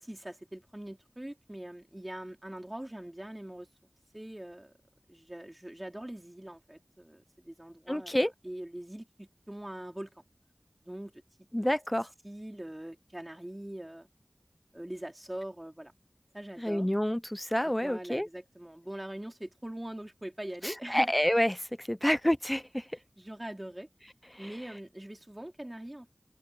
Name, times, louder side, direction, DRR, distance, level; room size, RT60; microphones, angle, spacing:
voice 1, 0.0-3.7 4.1-4.7 5.1-8.2 8.4-10.1 10.8-11.2 11.6-11.7 12.2-14.1 14.7-15.9 16.3-16.9 17.6-21.1 22.9-23.9 24.4-26.1, right 1 dB, 20° right, 4.3 m, -42 dB
voice 2, 7.9-8.3 11.5-12.1 16.6-18.3 20.6-22.9, equal, 10° left, 0.6 m, -28 dB
open air
wide cardioid pair, 45°, 0 cm